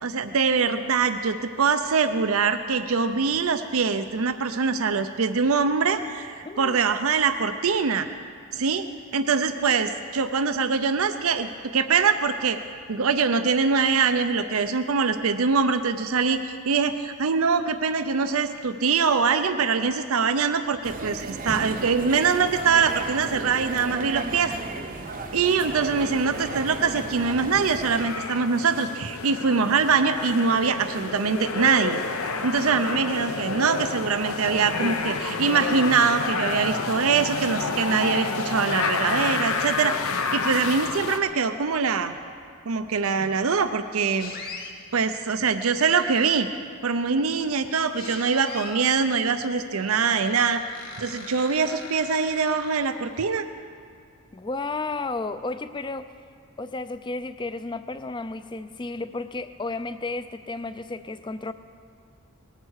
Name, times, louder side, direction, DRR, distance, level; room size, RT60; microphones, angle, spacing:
voice 1, 0.0-8.1 8.5-8.8 9.1-12.6 12.9-24.5 25.3-32.0 32.4-40.0 40.3-42.1 42.7-44.3 44.9-46.5 46.8-50.6 51.0-53.5, right 5 dB, 80° right, 10 dB, 0.6 m, -23 dB
voice 2, 6.4-6.8 54.3-56.1 56.6-61.5, left 3 dB, 20° left, 12 dB, 0.5 m, -32 dB
sound 1, 20.8-28.1, right 3 dB, 40° right, 0.8 m, -34 dB
sound 2, 25.1-41.2, left 4 dB, 85° left, 0.9 m, -30 dB
sound 3, 44.2-44.7 45.7-46.5 48.0-48.9 49.7-53.2, left 4 dB, 45° left, 1.7 m, -41 dB
19.0 x 9.1 x 6.4 m, 2.2 s
head